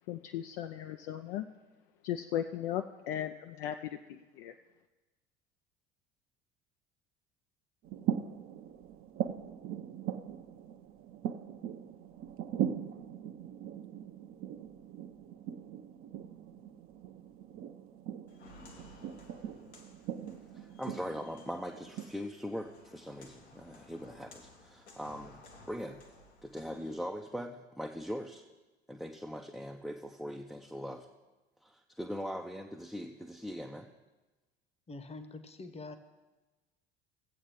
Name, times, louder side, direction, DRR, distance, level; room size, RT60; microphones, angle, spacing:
voice 1, 0.1-1.5 2.0-4.5, left 11 dB, 60° left, 7 dB, 0.5 m, -37 dB
sound 1, 7.8-22.1, right 9 dB, 40° right, 0.7 m, -40 dB
Walk footsteps, 18.3-27.1, left 2 dB, 85° left, 1.3 m, -57 dB
voice 2, 20.5-25.4 25.7-26.0 26.4-28.4 28.9-31.1 31.6-33.9, equal, ahead, 0 dB, 0.5 m, -41 dB
voice 3, 34.9-36.0, left 3 dB, 20° left, 10 dB, 1.0 m, -45 dB
17.0 x 8.1 x 3.1 m, 1.2 s
figure-of-eight pair, 60°, 32 cm